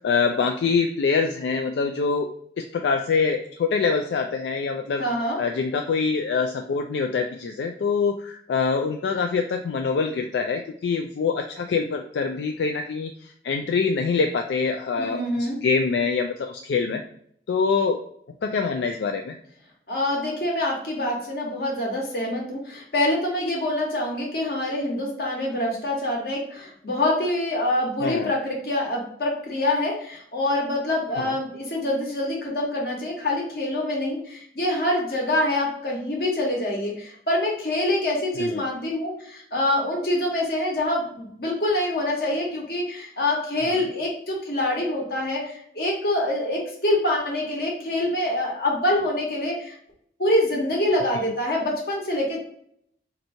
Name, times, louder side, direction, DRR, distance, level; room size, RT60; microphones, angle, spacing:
voice 1, 0.0-2.3 2.6-5.0 5.4-13.1 13.4-15.2 15.6-17.0 17.5-18.0 18.4-19.4 28.0-28.3 31.2-31.3 38.4-38.6, left 5 dB, 80° left, 4 dB, 0.3 m, -24 dB
voice 2, 5.0-5.4 15.0-15.6 19.9-49.7 50.2-52.4, left 1 dB, 55° left, -1 dB, 1.2 m, -25 dB
2.9 x 2.6 x 4.2 m, 0.67 s
head